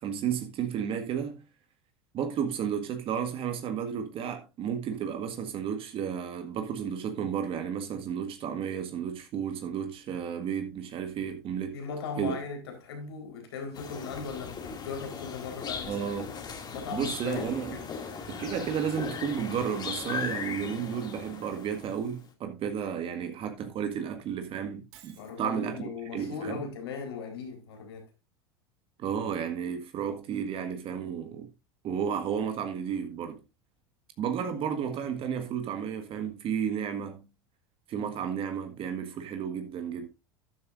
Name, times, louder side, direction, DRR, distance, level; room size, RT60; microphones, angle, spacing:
voice 1, 0.0-1.4 2.1-11.8 12.2-12.4 15.8-16.3 16.9-17.8 18.3-25.8 26.1-26.6 29.0-31.5 31.8-33.4 34.2-37.2 37.9-40.1, right 8 dB, 45° right, 1.7 m, -32 dB
voice 2, 11.7-16.4 16.7-17.9 25.2-28.1, left 5 dB, 85° left, 4.3 m, -38 dB
sound 1, 13.7-22.1, left 5 dB, 35° left, 2.5 m, -38 dB
Shatter, 24.9-25.5, right 11 dB, 65° right, 2.2 m, -54 dB
12.5 x 10.5 x 2.6 m
hypercardioid pair, 90°, 13 cm